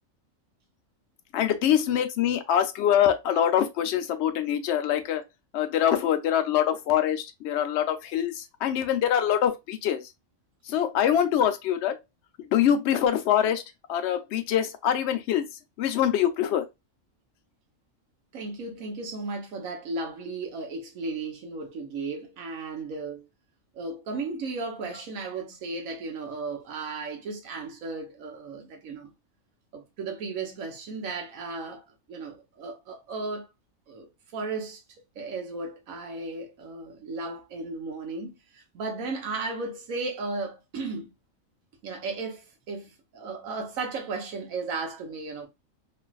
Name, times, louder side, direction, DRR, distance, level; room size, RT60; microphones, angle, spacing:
voice 1, 1.3-5.2 5.5-10.0 10.7-12.0 12.5-13.6 13.9-15.5 15.8-16.6, left 10 dB, 65° left, 0.8 m, -24 dB
voice 2, 18.3-23.3 23.7-29.1 29.7-33.5 33.9-34.8 35.2-41.1 41.8-45.5, right 3 dB, 80° right, 1.2 m, -35 dB
3.1 x 2.5 x 2.3 m
omnidirectional pair, 1.4 m